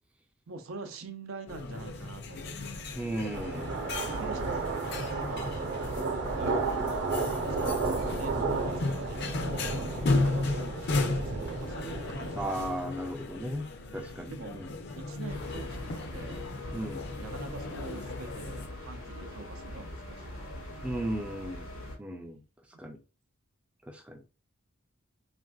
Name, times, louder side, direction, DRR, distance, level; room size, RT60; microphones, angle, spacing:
voice 1, 0.5-3.1 4.1-6.8 7.3-12.7 13.9-14.6 14.9-16.4 17.2-20.9 21.2-21.5, right 4 dB, 90° right, 0.6 m, -44 dB
sound 1, 1.5-18.7, left 3 dB, 55° left, 0.5 m, -35 dB
voice 2, 2.9-3.7 12.4-13.7 13.9-14.7 16.7-17.1 20.8-21.7 22.0-22.4 22.8-23.0 23.9-24.2, right 1 dB, 5° right, 0.3 m, -35 dB
sound 2, 3.3-12.7, right 3 dB, 55° right, 0.8 m, -33 dB
sound 3, 15.3-22.0, left 1 dB, 75° left, 0.8 m, -42 dB
3.4 x 2.6 x 2.3 m
head